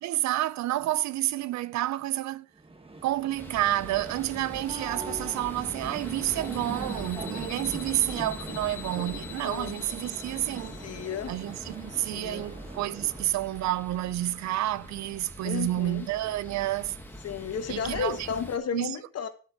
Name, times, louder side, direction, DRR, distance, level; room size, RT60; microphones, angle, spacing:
voice 1, 0.0-2.5 3.0-10.8 11.3-17.0 17.7-18.3 18.7-19.0, right 15 dB, 65° right, 0.4 m, -29 dB
sound 1, 2.6-13.4, right 3 dB, 20° right, 1.2 m, -42 dB
sound 2, 3.3-18.6, left 1 dB, 5° left, 1.4 m, -43 dB
sound 3, 5.8-11.7, left 10 dB, 85° left, 1.1 m, -46 dB
voice 2, 9.4-9.8 10.5-11.4 11.8-12.5 15.4-16.1 17.2-19.3, left 7 dB, 55° left, 1.3 m, -33 dB
10.0 x 7.7 x 2.9 m
cardioid pair, 90°, 30 cm